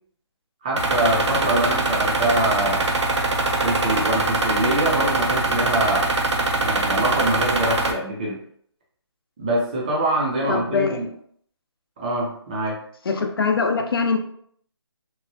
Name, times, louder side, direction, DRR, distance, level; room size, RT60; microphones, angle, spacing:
voice 1, 0.6-2.9 3.6-6.1 6.6-8.4 9.4-11.1 12.0-12.8, right 1 dB, 15° right, -3 dB, 0.4 m, -24 dB
sound 1, 0.8-7.9, right 2 dB, 85° right, 0.6 m, -22 dB
voice 2, 10.5-11.0 13.1-14.2, left 5 dB, 55° left, 4 dB, 0.5 m, -22 dB
2.9 x 2.1 x 2.6 m, 0.62 s
hypercardioid pair, 165°, 15 cm